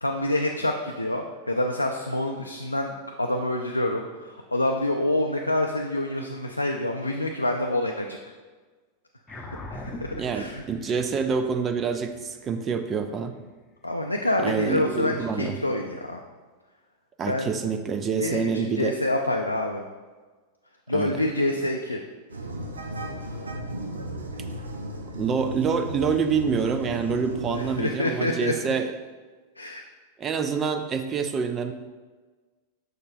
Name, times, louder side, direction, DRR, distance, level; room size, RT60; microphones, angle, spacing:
voice 1, 0.0-2.9 3.2-8.2 9.3-9.4 9.7-10.6 13.8-16.2 17.3-17.5 18.2-19.8 20.9-22.0 27.8-28.5 29.6-29.8, left 1 dB, 85° left, 1 dB, 0.4 m, -27 dB
sound 1, 9.3-14.0, left 2 dB, 15° left, 0.7 m, -43 dB
voice 2, 10.1-13.3 14.4-15.6 17.2-19.0 20.9-21.2 25.1-28.9 30.2-31.7, right 6 dB, 25° right, 8 dB, 0.4 m, -27 dB
sound 2, 22.3-27.8, right 1 dB, 75° right, 0.6 m, -35 dB
6.6 x 6.3 x 2.6 m, 1.4 s
figure-of-eight pair, 90°, 0 cm